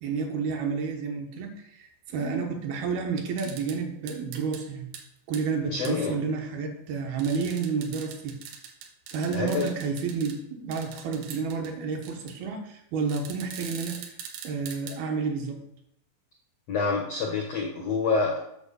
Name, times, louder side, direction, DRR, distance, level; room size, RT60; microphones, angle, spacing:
voice 1, 0.0-4.9 5.3-8.4 9.1-14.1 14.4-15.6, right 5 dB, 70° right, 3 dB, 2.8 m, -30 dB
sound 1, 3.4-3.8 4.1-4.6 4.9-5.0 5.3-5.4 5.8-5.9 7.2-10.4 10.7-11.7 12.0-12.3 13.1-15.0, right 7 dB, 85° right, 3.4 m, -42 dB
voice 2, 5.6-6.1 9.3-9.7 16.7-18.5, left 4 dB, 80° left, 1 dB, 1.4 m, -27 dB
8.9 x 5.9 x 6.8 m, 0.79 s
omnidirectional pair, 4.9 m